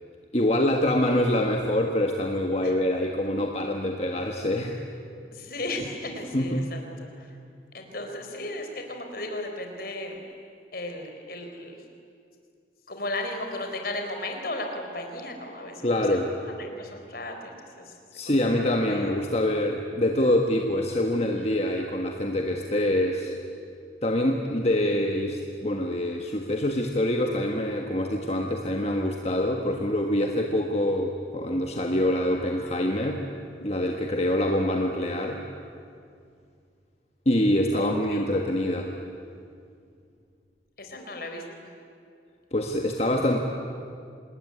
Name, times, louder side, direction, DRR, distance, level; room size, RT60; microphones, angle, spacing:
voice 1, 0.3-4.8 6.3-6.6 15.8-16.3 18.1-23.4 24.0-33.2 33.6-35.4 37.2-38.9 42.5-43.4, left 1 dB, 35° left, 2 dB, 1.5 m, -25 dB
voice 2, 5.3-7.3 7.7-10.2 10.7-11.8 12.9-16.1 16.4-18.0 18.3-18.4 18.8-19.1 37.7-38.3 40.8-41.4 43.1-43.4, left 1 dB, 50° left, 3 dB, 4.1 m, -35 dB
27.0 x 20.5 x 9.7 m, 2.3 s
head